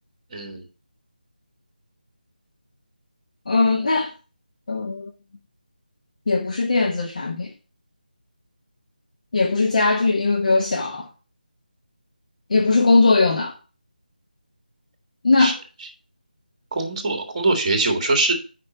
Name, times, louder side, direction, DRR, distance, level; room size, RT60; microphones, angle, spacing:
voice 1, 0.3-0.6 15.4-15.5 16.7-18.3, right 2 dB, 30° right, 2.0 m, -22 dB
voice 2, 3.5-4.1 4.7-5.1 6.3-7.5 9.3-11.1 12.5-13.5 15.2-15.6, left 3 dB, 50° left, 0.9 m, -19 dB
6.4 x 5.2 x 5.9 m
figure-of-eight pair, 160°, 5 cm